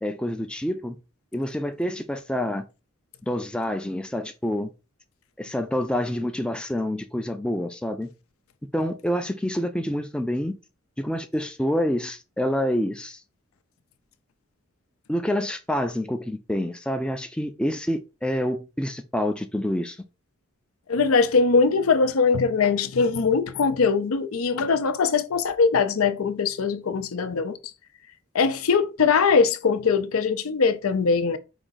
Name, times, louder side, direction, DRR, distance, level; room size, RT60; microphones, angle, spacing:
voice 1, 0.0-1.0 1.3-2.6 3.2-4.7 5.4-8.1 8.7-10.6 11.0-13.2 15.1-20.0, equal, 5° left, 0.3 m, -27 dB
voice 2, 20.9-27.6 28.3-31.4, left 5 dB, 90° left, 0.5 m, -21 dB
4.9 x 2.7 x 3.9 m
head